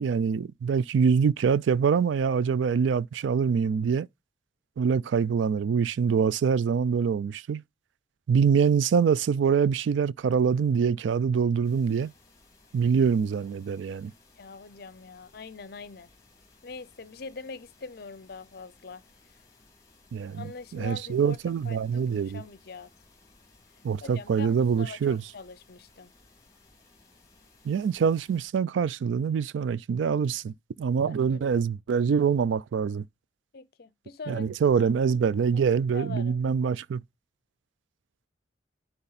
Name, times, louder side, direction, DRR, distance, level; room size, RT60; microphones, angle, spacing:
voice 1, 0.0-4.1 4.8-7.6 8.3-12.1 12.7-14.1 20.1-20.4 20.7-22.4 23.8-25.2 27.6-33.0 34.3-37.0, right 6 dB, 85° right, 0.3 m, -25 dB
sound 1, 11.6-28.5, left 3 dB, 20° left, 2.5 m, -60 dB
voice 2, 14.4-16.1 16.6-19.0 20.3-21.4 21.6-22.9 24.0-26.1 31.0-31.7 33.5-35.2 35.5-35.6 35.9-36.4, left 4 dB, 60° left, 0.6 m, -43 dB
9.7 x 3.5 x 4.0 m
head